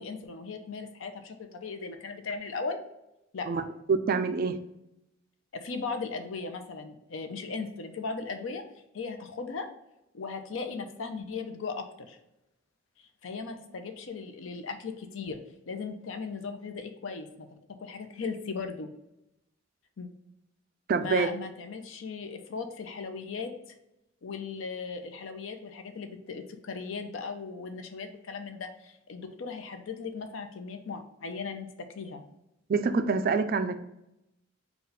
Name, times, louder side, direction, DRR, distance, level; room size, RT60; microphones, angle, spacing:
voice 1, 0.0-2.8 3.3-3.7 5.5-8.6 8.9-9.7 10.1-12.2 13.2-15.4 15.7-17.5 17.8-18.9 20.0-20.1 21.0-23.5 24.2-32.2, left 4 dB, 75° left, 6 dB, 0.5 m, -37 dB
voice 2, 3.5-4.6 20.9-21.3 32.7-33.7, right 4 dB, 45° right, 10 dB, 0.3 m, -26 dB
4.1 x 2.3 x 3.9 m, 0.87 s
head